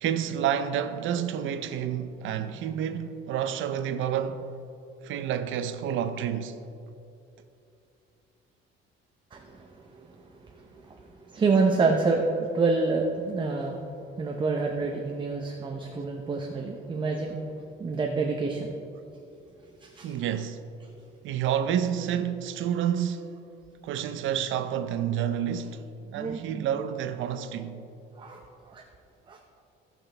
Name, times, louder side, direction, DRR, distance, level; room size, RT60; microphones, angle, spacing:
voice 1, 0.0-4.5 5.0-6.6 20.0-20.6 21.2-23.4 23.8-25.8 26.1-27.9, right 9 dB, 70° right, 0.6 m, -29 dB
voice 2, 9.3-13.8 14.2-17.4 17.8-18.7 19.8-20.2 26.2-26.7 28.2-28.8 29.3-29.4, right 3 dB, 25° right, 0.7 m, -28 dB
16.5 x 6.1 x 3.3 m
cardioid pair, 140°, 21 cm